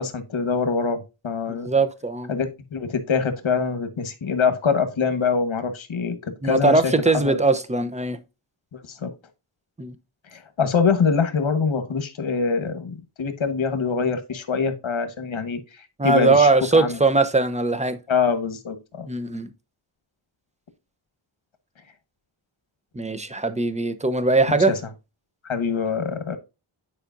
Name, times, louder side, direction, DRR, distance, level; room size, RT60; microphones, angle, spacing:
voice 1, 0.0-1.7 2.3-6.2 6.4-7.4 8.7-9.1 10.3-16.5 16.7-17.0 18.1-19.1 24.5-24.8 25.4-26.4, left 5 dB, 70° left, 1.3 m, -24 dB
voice 2, 1.6-2.3 6.4-8.2 9.8-9.9 16.0-18.0 19.1-19.5 22.9-24.8, right 3 dB, 15° right, 0.8 m, -20 dB
9.9 x 4.9 x 2.5 m
wide cardioid pair, 110°, 49 cm